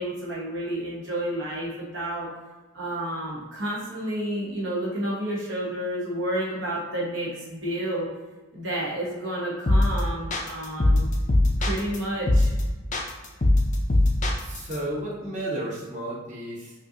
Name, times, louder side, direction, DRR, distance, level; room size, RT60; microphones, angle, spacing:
voice 1, 0.0-2.3 2.7-8.1 8.5-11.1 11.6-12.5, right 1 dB, 60° right, -5 dB, 1.0 m, -30 dB
sound 1, 9.7-10.0 10.3-12.0 12.3-12.6 12.9-14.8, left 1 dB, 35° left, 0.5 m, -20 dB
voice 2, 14.4-16.7, right 1 dB, 35° right, -6 dB, 1.1 m, -32 dB
5.3 x 2.5 x 2.8 m, 1.2 s
head